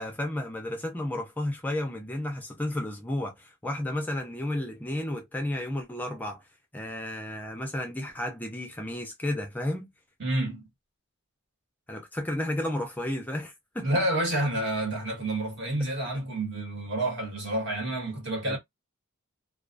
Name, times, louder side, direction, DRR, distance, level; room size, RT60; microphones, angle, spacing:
voice 1, 0.0-6.5 6.7-9.9 11.9-13.9 18.4-18.6, left 1 dB, 10° left, 0.4 m, -32 dB
voice 2, 10.2-10.7 13.8-18.6, right 1 dB, 55° right, 1.2 m, -29 dB
2.3 x 2.2 x 2.5 m
head